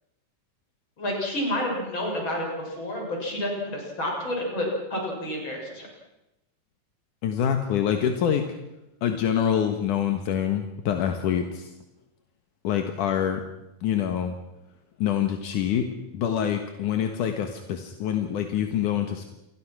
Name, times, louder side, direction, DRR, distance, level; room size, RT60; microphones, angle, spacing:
voice 1, 1.0-5.9, left 1 dB, 35° left, 0 dB, 7.7 m, -29 dB
voice 2, 7.2-8.5 9.0-11.7 12.6-13.4 13.8-14.4 15.0-19.3, left 9 dB, 80° left, 6 dB, 2.9 m, -26 dB
28.0 x 22.0 x 6.2 m, 0.91 s
omnidirectional pair, 3.6 m